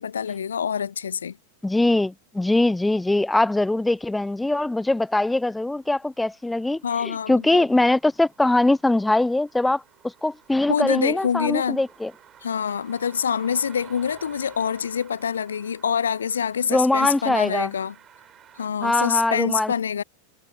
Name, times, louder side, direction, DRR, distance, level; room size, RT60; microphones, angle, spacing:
voice 1, 0.0-1.4 6.8-7.6 10.7-11.8 12.4-18.0 18.6-20.0, left 7 dB, 70° left, 0.6 m, -26 dB
voice 2, 1.6-6.8 7.3-9.8 10.2-12.1 16.7-17.7 18.8-19.7, left 2 dB, 5° left, 0.5 m, -22 dB
sound 1, 4.0-18.7, right 10 dB, 25° right, 7.9 m, -52 dB
figure-of-eight pair, 90°, 0 cm